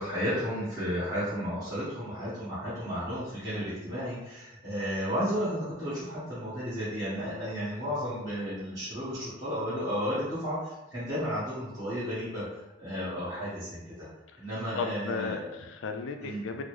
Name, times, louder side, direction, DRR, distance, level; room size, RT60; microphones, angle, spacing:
voice 1, 0.0-14.1 14.4-15.4 16.2-16.4, equal, 20° right, -13 dB, 1.3 m, -33 dB
voice 2, 14.8-16.6, left 4 dB, 65° left, 6 dB, 0.3 m, -34 dB
3.7 x 2.0 x 3.1 m, 1.0 s
head